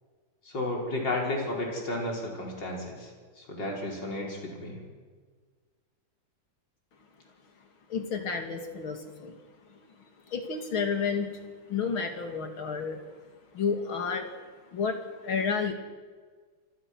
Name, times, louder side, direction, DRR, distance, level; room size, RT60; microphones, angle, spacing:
voice 1, 0.5-3.1 3.4-4.8, left 1 dB, 60° left, -2 dB, 6.0 m, -32 dB
voice 2, 7.9-9.3 10.3-11.3 11.7-13.0 13.5-14.3 14.7-15.7, left 5 dB, 80° left, 4 dB, 3.4 m, -30 dB
29.0 x 25.0 x 6.3 m, 1.5 s
omnidirectional pair, 2.2 m